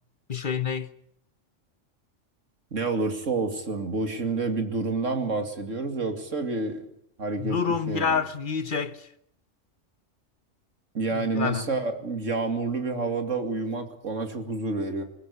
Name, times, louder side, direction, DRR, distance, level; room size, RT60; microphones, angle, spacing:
voice 1, 0.3-0.9 7.4-9.1 11.1-11.7, left 6 dB, 45° left, 1.2 m, -28 dB
voice 2, 2.7-6.8 7.2-7.6 7.9-8.2 10.9-15.0, right 3 dB, 80° right, 2.9 m, -28 dB
21.5 x 20.5 x 8.3 m
omnidirectional pair, 1.3 m